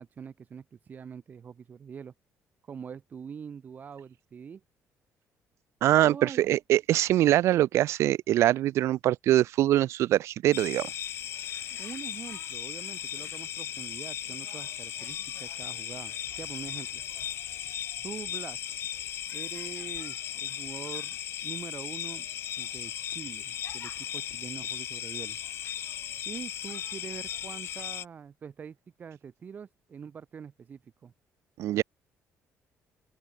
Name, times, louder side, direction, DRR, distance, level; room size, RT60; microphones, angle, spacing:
voice 1, 0.0-2.1 2.7-4.6 6.0-6.4 11.8-17.0 18.0-18.6 19.3-21.2 21.4-22.3 22.6-25.4 26.2-31.1, right 7 dB, 35° right, 1.5 m, -44 dB
voice 2, 5.8-10.9 31.6-31.8, right 14 dB, 65° right, 0.4 m, -23 dB
sound 1, 10.5-28.0, left 10 dB, 55° left, 0.8 m, -37 dB
open air
cardioid pair, 150°, 5 cm